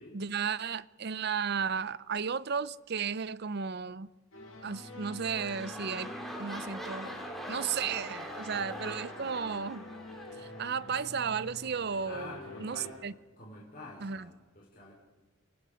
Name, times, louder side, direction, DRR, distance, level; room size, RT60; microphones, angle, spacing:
voice 1, 0.1-4.1 4.6-6.1 6.4-7.2 7.5-9.8 10.4-13.1 14.0-14.3, right 6 dB, 50° right, 0.6 m, -34 dB
sound 1, 4.3-12.9, left 1 dB, 70° left, 5.8 m, -47 dB
sound 2, 4.9-11.2 11.9-12.0, equal, ahead, 2.9 m, -43 dB
voice 2, 12.0-13.0 13.4-14.9, left 2 dB, 40° left, 4.7 m, -47 dB
29.5 x 19.0 x 5.1 m
head